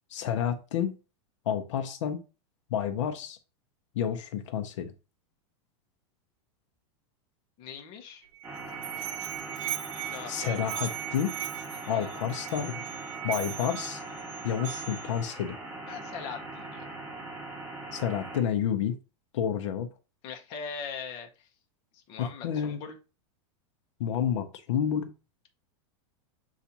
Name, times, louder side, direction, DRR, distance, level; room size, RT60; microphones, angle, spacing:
voice 1, 0.1-1.0 1.5-2.2 2.7-3.4 3.9-4.9 10.3-11.3 11.9-12.8 13.2-14.0 14.4-15.6 17.9-19.0 19.3-19.9 22.2-22.8 24.0-25.1, left 9 dB, 75° left, 0.6 m, -30 dB
voice 2, 7.6-8.3 10.0-10.7 11.7-12.1 15.9-16.9 20.2-21.5 21.9-23.0, left 6 dB, 35° left, 0.7 m, -41 dB
Musical instrument, 8.2-15.2, right 12 dB, 80° right, 0.7 m, -38 dB
sound 1, 8.4-18.4, right 2 dB, 15° right, 1.6 m, -41 dB
7.0 x 2.4 x 2.7 m
supercardioid pair, 165°, 16 cm